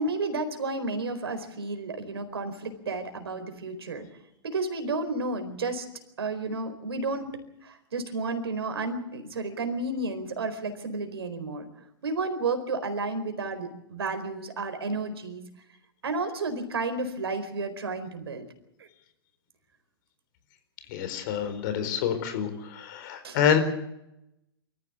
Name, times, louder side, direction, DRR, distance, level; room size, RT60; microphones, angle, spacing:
voice 1, 0.0-4.1 4.4-5.9 6.2-7.3 7.6-11.7 12.0-15.4 16.0-18.4 18.8-18.9 23.2-23.4, right 3 dB, 75° right, 7 dB, 4.4 m, -32 dB
voice 2, 20.9-23.6, left 8 dB, 50° left, 9 dB, 4.4 m, -27 dB
24.5 x 14.5 x 8.2 m, 0.84 s
hypercardioid pair, 115°, 13 cm